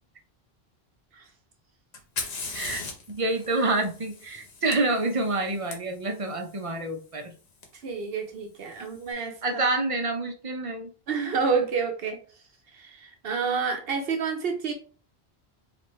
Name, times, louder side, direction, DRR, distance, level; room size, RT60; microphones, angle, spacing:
Fire, 1.9-5.7 7.6-7.7 8.6-9.0, left 4 dB, 70° left, 1.1 m, -38 dB
voice 1, 2.5-2.8 3.1-7.3 9.4-10.9, right 2 dB, 40° right, 4 dB, 0.5 m, -27 dB
voice 2, 7.8-9.6 11.1-12.2 12.7-14.7, right 5 dB, 70° right, 4 dB, 0.8 m, -29 dB
4.5 x 2.5 x 3.1 m, 0.39 s
omnidirectional pair, 1.1 m